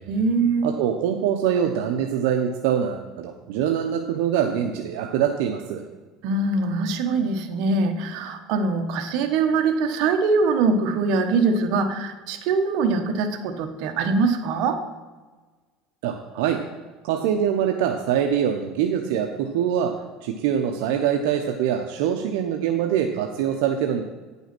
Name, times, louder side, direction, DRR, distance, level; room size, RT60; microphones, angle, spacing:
voice 1, 0.1-0.7 6.2-14.8, right 4 dB, 65° right, 6 dB, 1.1 m, -23 dB
voice 2, 0.6-5.8 16.0-16.6 17.0-19.9 20.2-24.0, right 9 dB, 80° right, 4 dB, 0.7 m, -24 dB
9.3 x 5.6 x 6.0 m, 1.3 s
cardioid pair, 130°, 0 cm